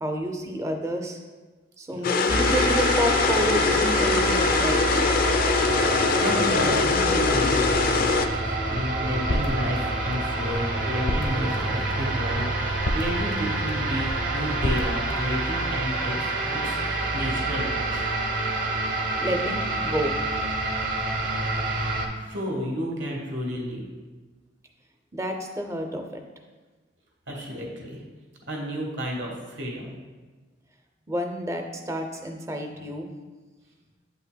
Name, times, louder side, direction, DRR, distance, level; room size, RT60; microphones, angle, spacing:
voice 1, 0.0-1.2 1.8-5.1 16.1-16.7 19.2-20.1 25.1-26.2 31.1-33.1, equal, 15° right, 4 dB, 0.5 m, -30 dB
sound 1, 2.0-8.3, left 5 dB, 50° left, 0.3 m, -23 dB
sound 2, 2.3-22.1, right 2 dB, 45° right, 0.7 m, -27 dB
voice 2, 5.7-8.1 8.4-18.1 21.8-21.9 22.2-23.8 27.3-28.0 28.5-29.9, equal, 75° right, 0 dB, 1.3 m, -32 dB
sound 3, 7.7-15.6, left 1 dB, 80° left, 0.7 m, -34 dB
8.0 x 5.4 x 2.2 m, 1.3 s
head